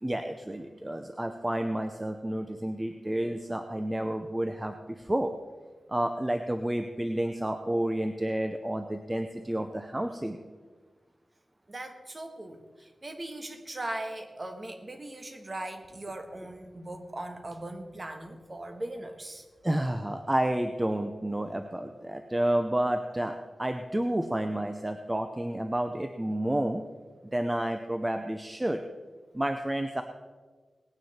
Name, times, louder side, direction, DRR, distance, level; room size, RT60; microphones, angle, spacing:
voice 1, 0.0-5.3 5.9-10.4 19.6-26.8 27.3-28.8 29.3-30.0, right 1 dB, 15° right, 6 dB, 0.7 m, -30 dB
voice 2, 11.7-19.4, right 1 dB, 30° right, 6 dB, 1.5 m, -39 dB
19.0 x 9.5 x 4.4 m, 1.4 s
wide cardioid pair, 100°, 0 cm